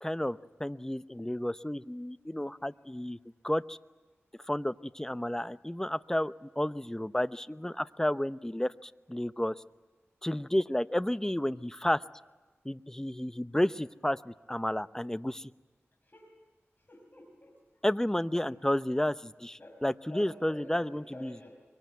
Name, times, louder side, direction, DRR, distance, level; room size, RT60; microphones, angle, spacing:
voice 1, 0.0-3.2 3.4-3.8 4.5-9.6 10.2-12.0 12.6-15.5 17.8-21.5, left 1 dB, 10° left, 14 dB, 0.8 m, -31 dB
voice 2, 16.8-17.9 18.5-18.6 19.6-19.8 20.1-21.5, left 1 dB, 40° left, 0 dB, 5.7 m, -49 dB
24.0 x 23.0 x 9.4 m, 1.2 s
cardioid pair, 45°, 5 cm